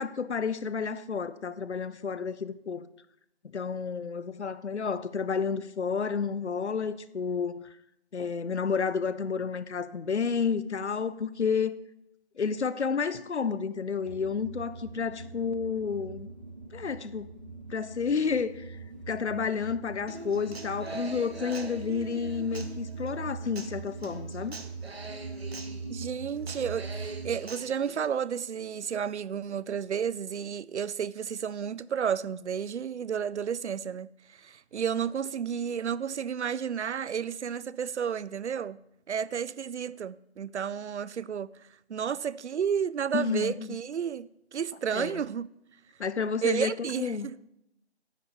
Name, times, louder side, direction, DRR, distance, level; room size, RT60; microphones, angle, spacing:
voice 1, 0.0-2.9 3.5-7.6 8.1-11.7 12.4-16.3 16.7-17.3 17.7-18.8 19.1-24.6 43.1-43.8 44.9-45.2 46.0-47.3, left 6 dB, 85° left, 0.7 m, -30 dB
sound 1, 14.0-27.4, right 4 dB, 40° right, 1.9 m, -41 dB
Human voice / Acoustic guitar, 20.1-28.1, right 3 dB, 65° right, 1.1 m, -43 dB
voice 2, 25.9-38.8 39.1-45.5 46.4-47.4, right 7 dB, 90° right, 0.5 m, -32 dB
10.0 x 8.0 x 4.2 m
figure-of-eight pair, 175°, 33 cm